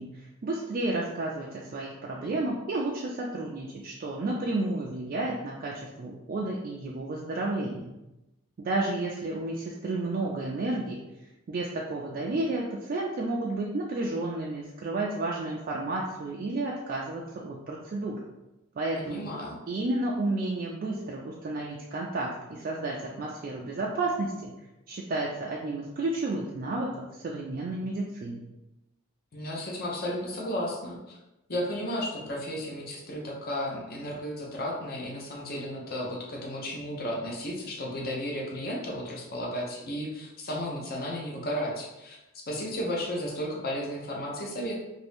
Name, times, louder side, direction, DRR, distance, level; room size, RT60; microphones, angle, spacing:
voice 1, 0.0-8.0 8.6-11.0 11.5-18.2 18.8-19.3 19.7-24.5 24.9-28.4, right 2 dB, 40° right, -2 dB, 0.3 m, -31 dB
voice 2, 19.0-19.6 29.3-31.2 31.5-42.2 42.5-44.8, equal, 45° left, -2 dB, 0.7 m, -33 dB
2.6 x 2.6 x 3.4 m, 0.97 s
head